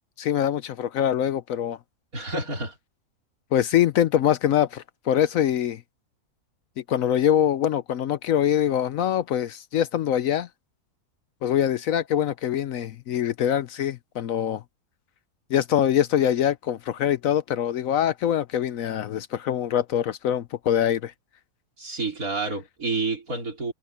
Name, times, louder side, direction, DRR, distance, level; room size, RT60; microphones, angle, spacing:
voice 1, 0.2-1.8 3.5-5.8 6.8-10.5 11.4-14.6 15.5-21.1, left 10 dB, 65° left, 1.0 m, -24 dB
voice 2, 2.1-2.8 21.8-23.7, right 3 dB, 65° right, 5.0 m, -29 dB
omnidirectional pair, 1.6 m